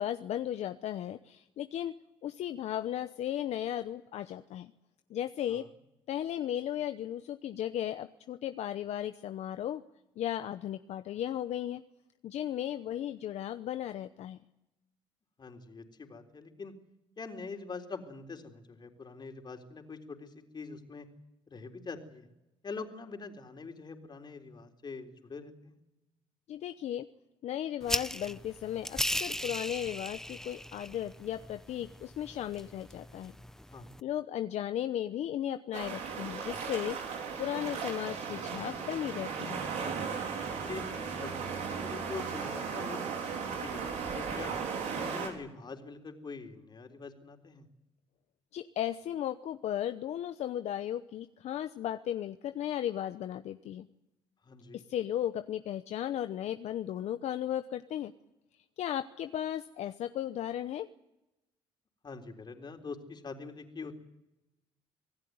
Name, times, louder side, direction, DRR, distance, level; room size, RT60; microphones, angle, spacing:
voice 1, 0.0-1.9 2.2-4.7 5.1-5.6 6.1-9.8 10.2-11.8 12.2-14.4 26.5-27.1 27.4-33.3 34.0-37.0 37.4-39.6 48.5-53.9 54.7-58.1 58.8-60.9, left 11 dB, 70° left, 9 dB, 0.9 m, -35 dB
voice 2, 15.4-16.7 17.2-21.1 21.5-22.3 22.6-25.8 33.7-34.0 40.7-44.5 44.9-47.7 54.4-54.8 62.0-64.0, left 4 dB, 40° left, 4 dB, 3.9 m, -44 dB
sound 1, 27.8-34.0, left 1 dB, 5° left, 0.8 m, -38 dB
sound 2, 35.7-45.3, right 6 dB, 80° right, 4.8 m, -36 dB
26.0 x 17.5 x 9.5 m, 0.95 s
supercardioid pair, 75°, 12 cm